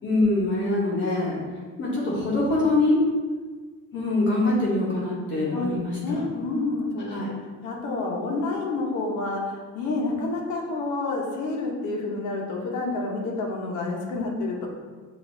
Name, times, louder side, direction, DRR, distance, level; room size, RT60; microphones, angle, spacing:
voice 1, 0.0-1.4 1.8-3.0 3.9-6.2 7.1-7.3, left 2 dB, 35° left, -5 dB, 0.9 m, -24 dB
voice 2, 5.5-7.2 7.6-14.7, left 2 dB, 70° left, 0 dB, 0.9 m, -29 dB
7.1 x 2.6 x 2.6 m, 1.4 s
cardioid pair, 175°, 31 cm